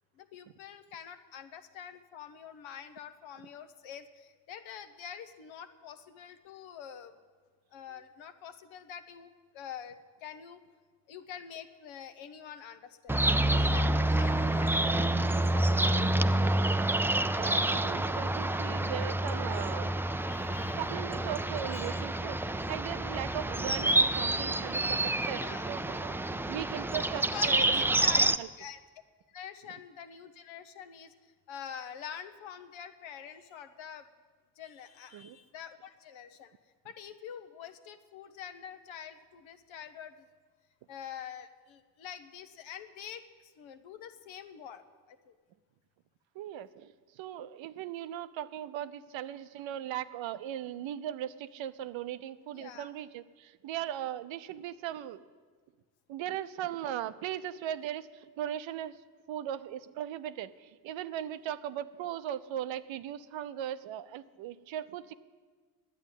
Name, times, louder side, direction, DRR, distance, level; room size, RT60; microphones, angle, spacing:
voice 1, 0.2-7.1 7.7-10.6 11.1-13.2 13.5-17.0 20.3-20.8 21.7-22.0 24.3-24.8 25.3-25.7 27.1-28.3 28.6-28.8 29.3-34.1 34.6-36.5 36.8-40.3 40.9-45.4 52.5-52.9, left 8 dB, 75° left, 9 dB, 1.0 m, -46 dB
sound 1, 13.1-28.4, right 1 dB, 5° right, 0.3 m, -28 dB
voice 2, 17.3-19.9 20.7-25.4 25.7-28.5 35.1-35.4 46.4-55.2 56.1-59.0 59.3-65.1, right 11 dB, 70° right, 14 dB, 0.7 m, -38 dB
10.0 x 8.5 x 9.1 m, 1.5 s
supercardioid pair, 50°, 47 cm